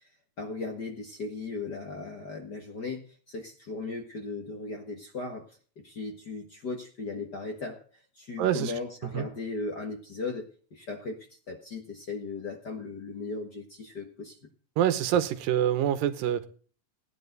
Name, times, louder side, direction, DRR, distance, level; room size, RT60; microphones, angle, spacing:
voice 1, 0.4-5.5 5.8-7.8 8.1-14.4, left 3 dB, 40° left, 1.6 m, -37 dB
voice 2, 8.4-8.7 9.1-9.3 14.8-16.5, right 10 dB, 85° right, 2.7 m, -26 dB
17.0 x 10.5 x 4.0 m
omnidirectional pair, 3.9 m